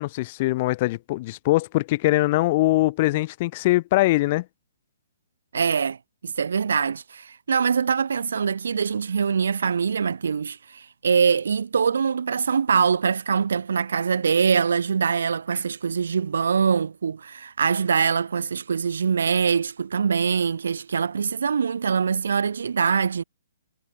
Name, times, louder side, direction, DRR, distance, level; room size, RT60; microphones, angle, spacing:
voice 1, 0.0-4.4, left 19 dB, 25° left, 1.3 m, -22 dB
voice 2, 5.5-6.0 6.2-23.2, right 6 dB, 75° right, 1.4 m, -23 dB
hypercardioid pair, 175°, 0 cm